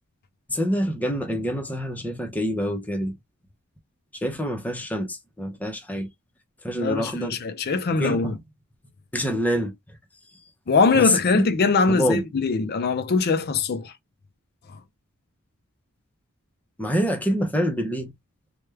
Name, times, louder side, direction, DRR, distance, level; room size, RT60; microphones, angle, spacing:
voice 1, 0.5-3.1 4.1-6.1 6.6-7.4 8.0-8.4 9.1-9.7 10.9-11.5 11.9-12.2 16.8-18.1, equal, 5° left, 0.6 m, -26 dB
voice 2, 6.8-8.4 10.7-13.9, left 4 dB, 45° left, 0.4 m, -22 dB
3.3 x 2.2 x 3.3 m
head